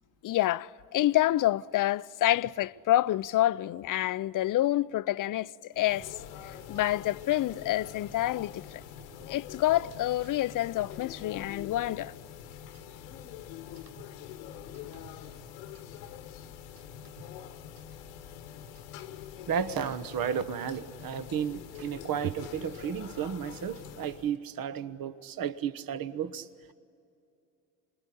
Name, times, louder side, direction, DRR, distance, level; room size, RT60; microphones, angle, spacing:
voice 1, 0.2-6.1 6.7-8.6 9.3-12.1, left 14 dB, 45° left, 0.6 m, -27 dB
sound 1, 5.7-24.4, left 9 dB, 85° left, 1.4 m, -45 dB
voice 2, 19.5-26.5, right 8 dB, 50° right, 1.2 m, -33 dB
26.5 x 21.0 x 10.0 m
supercardioid pair, 70°, 46 cm